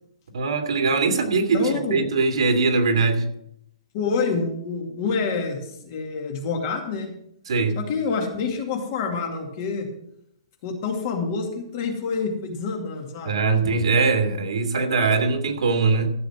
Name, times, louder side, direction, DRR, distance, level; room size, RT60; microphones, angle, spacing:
voice 1, 0.3-3.3 7.5-7.8 13.2-16.1, right 4 dB, 70° right, 2.3 m, -21 dB
voice 2, 1.5-2.0 3.9-7.1 7.7-9.9 10.6-13.4 13.6-13.7, left 4 dB, 30° left, 2.4 m, -27 dB
14.0 x 7.1 x 6.1 m
hypercardioid pair, 175°, 3 cm